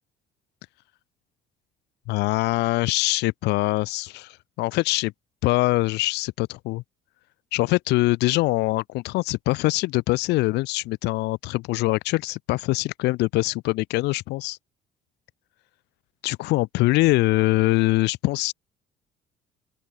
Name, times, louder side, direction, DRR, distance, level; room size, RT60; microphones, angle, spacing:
voice 1, 2.1-5.1 5.4-6.8 7.5-14.6 16.2-18.5, left 20 dB, 90° left, 1.7 m, -23 dB
open air
cardioid pair, 110°, 17 cm